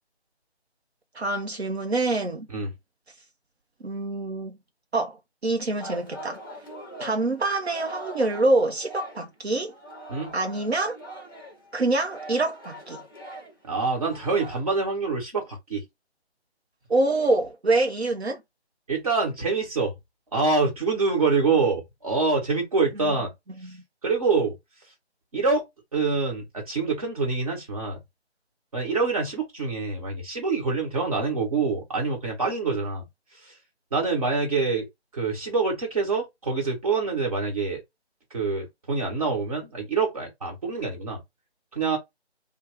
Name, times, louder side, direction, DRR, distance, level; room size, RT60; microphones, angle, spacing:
voice 1, 1.1-2.5 3.8-4.5 4.9-5.2 5.4-6.4 7.0-9.7 10.3-11.0 11.7-13.0 16.9-18.4 23.0-23.2 23.6-23.8, right 2 dB, 70° right, 0.8 m, -25 dB
Singing, 5.8-9.4 9.7-14.6, right 1 dB, 20° left, 0.7 m, -42 dB
voice 2, 13.6-15.8 18.9-19.9 20.3-23.3 24.0-24.5 25.3-25.6 25.9-28.0 28.7-33.0 33.9-34.9 35.1-37.8 38.3-41.2 41.7-42.0, right 4 dB, 35° right, 1.4 m, -25 dB
3.2 x 2.3 x 3.5 m
figure-of-eight pair, 165°, 33 cm